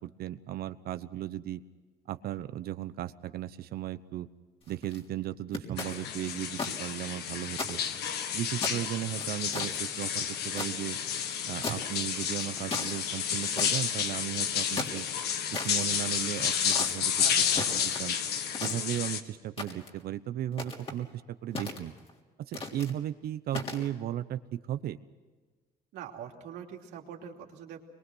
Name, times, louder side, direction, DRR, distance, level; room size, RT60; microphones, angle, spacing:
voice 1, 0.0-1.6 2.1-4.3 4.7-7.8 8.3-11.0 11.5-15.1 15.5-17.1 17.7-18.2 18.6-21.1 21.4-21.9 22.4-25.0, right 12 dB, 65° right, 12 dB, 0.9 m, -36 dB
sound 1, 4.6-5.0 5.5-6.7 7.1-7.2 7.5-8.3 8.6-10.7 11.6-12.0 12.4-12.9 13.6-13.9 14.5-15.7 16.5-16.9 17.5-18.1 18.5-19.1 19.6-20.0 20.5-21.0 21.6-22.1 22.5-22.9 23.5-23.9, left 2 dB, 35° left, 3.6 m, -37 dB
sound 2, 5.8-19.2, left 8 dB, 75° left, 1.7 m, -31 dB
voice 2, 17.2-18.0 25.9-27.8, right 9 dB, 90° right, 1 dB, 3.1 m, -44 dB
24.0 x 22.5 x 6.3 m, 1.4 s
cardioid pair, 110°, 17 cm